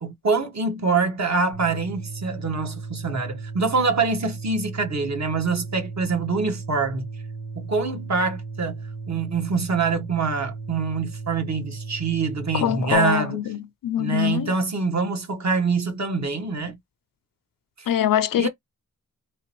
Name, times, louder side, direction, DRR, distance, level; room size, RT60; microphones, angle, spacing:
voice 1, 0.0-7.1 7.5-8.8 9.1-13.4 14.0-16.8 17.8-17.9 18.4-18.5, right 4 dB, 55° right, 1.3 m, -25 dB
sound 1, 1.5-13.0, right 4 dB, 90° right, 1.1 m, -36 dB
voice 2, 12.5-14.5 17.9-18.5, left 11 dB, 75° left, 0.5 m, -23 dB
3.7 x 3.1 x 3.0 m
wide cardioid pair, 95°, 33 cm